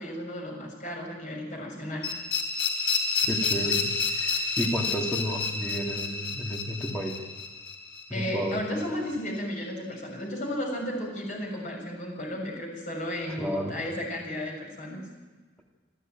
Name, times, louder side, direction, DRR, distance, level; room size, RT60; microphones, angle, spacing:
voice 1, 0.0-2.1 8.1-15.0, left 1 dB, 40° left, 0 dB, 6.6 m, -34 dB
sound 1, 2.0-8.8, left 4 dB, 70° left, 4.1 m, -30 dB
voice 2, 3.2-7.2 8.1-8.6 13.4-13.8, equal, 5° left, -1 dB, 2.6 m, -32 dB
27.5 x 13.0 x 9.1 m, 1.4 s
head